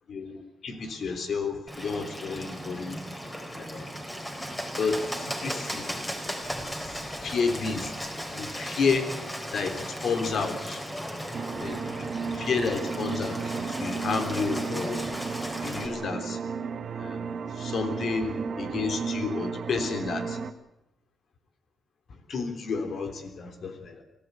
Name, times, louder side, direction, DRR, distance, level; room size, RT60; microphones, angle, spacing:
voice 1, 0.1-3.0 3.6-3.9 4.8-5.9 6.6-9.1 9.5-10.8 11.5-15.1 15.6-16.4 16.9-20.4 22.3-24.0, left 4 dB, 65° left, 7 dB, 3.4 m, -31 dB
Bird, 1.7-15.9, equal, 10° left, 4.5 m, -36 dB
sound 1, 11.3-20.5, right 5 dB, 60° right, 1.6 m, -34 dB
24.0 x 15.5 x 8.4 m, 0.87 s
cardioid pair, 90°, 0 cm